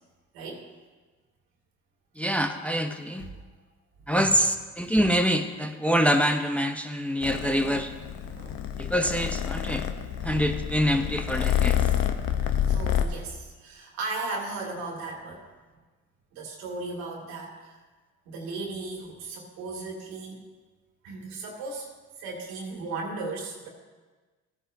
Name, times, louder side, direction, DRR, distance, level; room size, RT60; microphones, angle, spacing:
voice 1, 0.3-0.6 3.2-3.3 4.1-4.4 8.1-8.6 12.6-15.4 16.3-17.8 18.3-20.4 21.0-21.9 22.2-23.7, right 3 dB, 90° right, -1 dB, 2.4 m, -36 dB
voice 2, 2.2-3.3 4.1-7.9 8.8-9.9 10.2-11.8, equal, 5° left, 5 dB, 0.7 m, -25 dB
Purr, 7.2-13.0, left 10 dB, 70° left, 0.9 m, -28 dB
14.5 x 9.8 x 2.7 m, 1.3 s
supercardioid pair, 80°, 36 cm